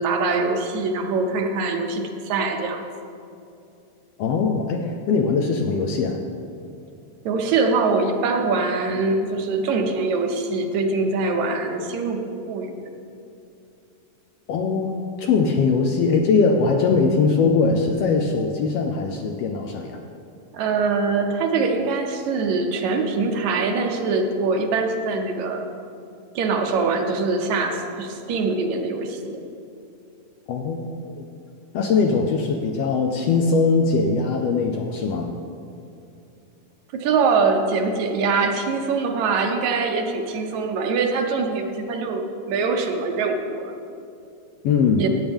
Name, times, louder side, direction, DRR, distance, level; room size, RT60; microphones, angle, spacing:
voice 1, 0.0-2.8 7.3-12.9 20.5-25.6 26.4-29.4 36.9-43.7 45.0-45.1, right 4 dB, 75° right, 4 dB, 2.2 m, -23 dB
voice 2, 4.2-6.2 14.5-20.0 30.5-30.9 31.2-31.3 31.7-35.3 44.6-45.0, left 4 dB, 75° left, 3 dB, 1.5 m, -21 dB
15.0 x 8.9 x 3.5 m, 2.6 s
omnidirectional pair, 3.4 m